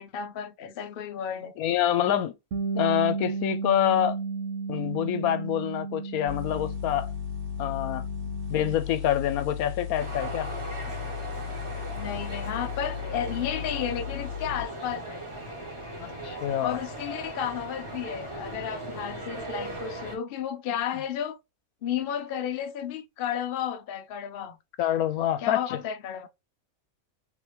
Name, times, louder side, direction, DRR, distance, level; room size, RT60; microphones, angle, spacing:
voice 1, 0.0-1.5 11.9-15.3 16.6-21.4 21.8-24.6 25.4-26.3, left 9 dB, 55° left, 0.6 m, -33 dB
voice 2, 1.6-2.3 2.7-4.2 4.7-7.1 7.6-8.0 8.5-10.5 16.0-16.8 24.8-25.8, left 11 dB, 85° left, 1.1 m, -26 dB
Bass guitar, 2.5-8.8, right 4 dB, 60° right, 1.0 m, -33 dB
sound 1, 6.3-14.7, left 10 dB, 40° right, 1.5 m, -36 dB
sound 2, 10.0-20.2, right 2 dB, 20° right, 1.7 m, -38 dB
3.5 x 3.3 x 2.9 m
omnidirectional pair, 1.5 m